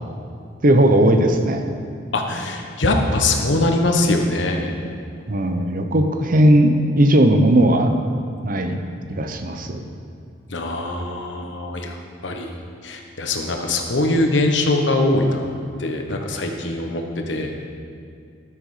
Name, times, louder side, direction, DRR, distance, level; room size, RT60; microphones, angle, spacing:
voice 1, 0.6-1.7 5.3-6.7 7.0-7.9 8.4-8.8 9.1-9.8, right 1 dB, 45° right, 6 dB, 0.8 m, -17 dB
voice 2, 2.1-4.8 10.5-12.0 12.2-12.5 12.8-15.5 15.8-17.7, left 2 dB, 75° left, 3 dB, 1.1 m, -22 dB
13.0 x 6.6 x 4.9 m, 2.3 s
head